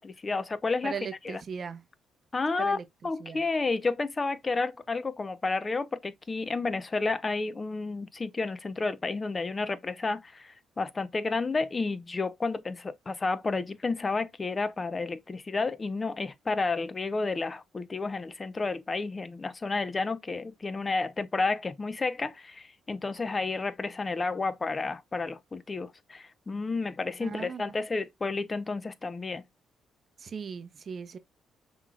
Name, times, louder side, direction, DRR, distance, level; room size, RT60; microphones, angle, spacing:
voice 1, 0.0-0.9 1.2-1.4 2.3-2.8 3.0-29.4, left 3 dB, 30° left, 0.6 m, -31 dB
voice 2, 0.8-1.8 2.6-2.8 3.2-3.4 27.2-27.8 30.2-31.2, right 6 dB, 50° right, 0.6 m, -38 dB
5.8 x 3.0 x 2.3 m
cardioid pair, 90°, 0 cm